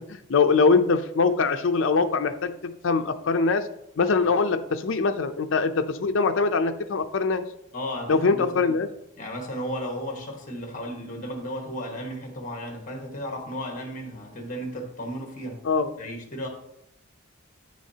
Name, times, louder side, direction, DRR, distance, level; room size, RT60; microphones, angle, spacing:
voice 1, 0.0-2.5 2.8-3.7 4.0-7.4 8.1-8.9 15.6-15.9, left 4 dB, 65° left, 7 dB, 0.5 m, -22 dB
voice 2, 7.7-8.7 9.2-15.6 16.0-16.5, equal, 40° left, 2 dB, 1.3 m, -34 dB
9.3 x 6.2 x 2.8 m, 0.81 s
head